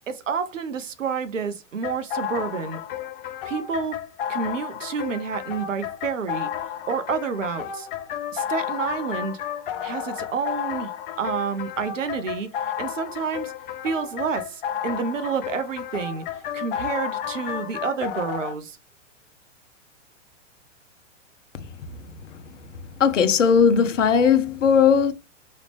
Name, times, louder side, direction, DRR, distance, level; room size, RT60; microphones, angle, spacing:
voice 1, 0.1-2.8 3.4-4.0 4.3-6.5 6.9-7.9 8.3-9.4 9.8-13.5 13.8-16.2 16.5-18.8, right 6 dB, 75° right, 0.9 m, -29 dB
sound 1, 1.8-18.5, left 9 dB, 45° left, 0.8 m, -32 dB
voice 2, 23.0-25.1, left 6 dB, 70° left, 0.8 m, -18 dB
4.8 x 3.2 x 3.3 m
figure-of-eight pair, 110°, 38 cm